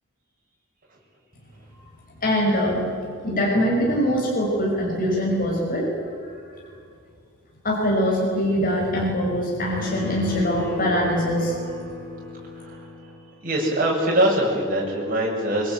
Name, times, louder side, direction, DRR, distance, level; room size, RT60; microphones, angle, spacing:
voice 1, 2.2-2.8 3.2-5.9 7.6-11.6, equal, 40° left, -2 dB, 5.6 m, -23 dB
sound 1, 9.7-13.3, left 2 dB, 55° right, 5.4 m, -34 dB
voice 2, 12.5-13.1 13.4-15.7, right 1 dB, 40° right, -2 dB, 7.5 m, -23 dB
24.0 x 22.0 x 9.2 m, 2.3 s
head